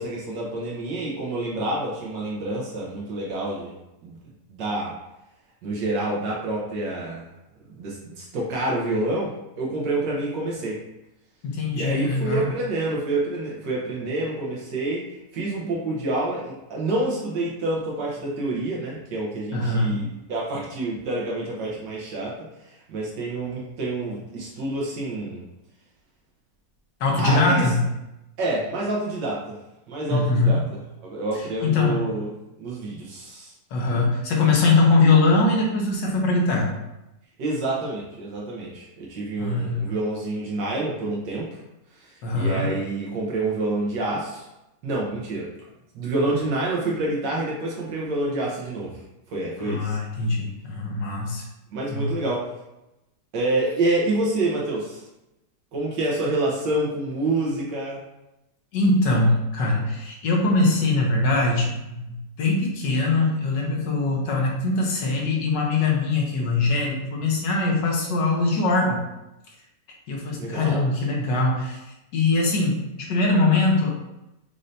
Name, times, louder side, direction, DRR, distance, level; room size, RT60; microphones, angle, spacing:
voice 1, 0.0-3.8 4.0-4.2 4.5-4.9 5.6-7.3 7.7-10.8 11.7-15.0 15.3-25.4 27.2-27.7 28.4-29.6 29.9-32.3 32.6-33.5 37.4-41.6 42.0-44.5 44.8-45.5 45.9-49.0 49.3-50.0 51.7-52.5 53.3-55.0 55.7-58.0 70.4-70.8, right 2 dB, 80° right, -4 dB, 1.6 m, -28 dB
voice 2, 11.4-12.5 19.5-20.0 27.0-27.8 30.1-30.6 31.6-32.1 33.7-36.7 39.4-40.0 42.2-42.7 49.6-51.4 51.9-52.1 58.7-69.0 70.1-71.8 72.1-73.9, left 3 dB, 80° left, -1 dB, 1.6 m, -22 dB
5.4 x 3.2 x 2.7 m, 0.93 s
omnidirectional pair, 1.9 m